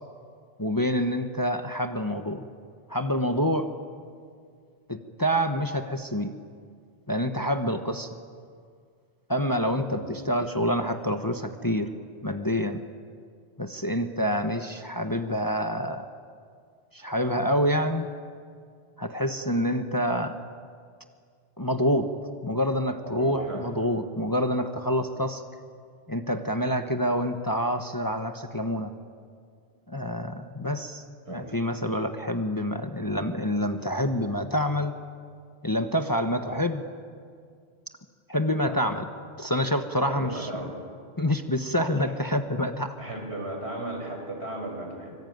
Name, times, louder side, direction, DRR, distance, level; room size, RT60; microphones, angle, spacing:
voice 1, 0.6-2.5 2.9-3.7 4.9-6.3 7.1-8.2 9.3-11.9 12.2-12.8 13.6-16.1 16.9-18.1 19.0-20.4 21.6-22.1 22.4-25.4 26.1-28.9 29.9-34.9 35.6-36.8 38.3-39.0 39.4-40.5 41.2-43.0, equal, 20° left, 6 dB, 1.2 m, -27 dB
voice 2, 23.0-23.7 26.9-27.0 31.3-31.5 36.5-36.6 38.6-38.8 40.1-40.7 41.8-42.1 43.0-45.2, right 2 dB, 70° right, 2 dB, 6.1 m, -36 dB
25.5 x 24.5 x 9.4 m, 2.2 s
omnidirectional pair, 1.1 m